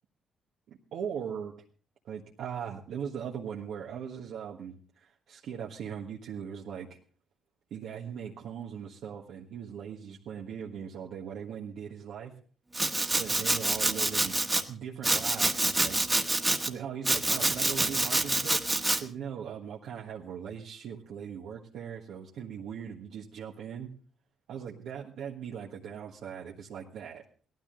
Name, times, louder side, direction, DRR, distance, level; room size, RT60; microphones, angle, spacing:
voice 1, 0.9-1.5 2.0-6.9 7.7-12.3 13.2-14.4 14.7-16.0 16.7-18.6 18.9-23.9 24.5-27.2, right 8 dB, 75° right, -2 dB, 1.5 m, -39 dB
Domestic sounds home sounds, 12.7-14.6 15.0-16.7 17.0-19.0, right 2 dB, 15° right, 1.5 m, -27 dB
18.0 x 13.0 x 3.8 m, 0.43 s
cardioid pair, 90°, 0 cm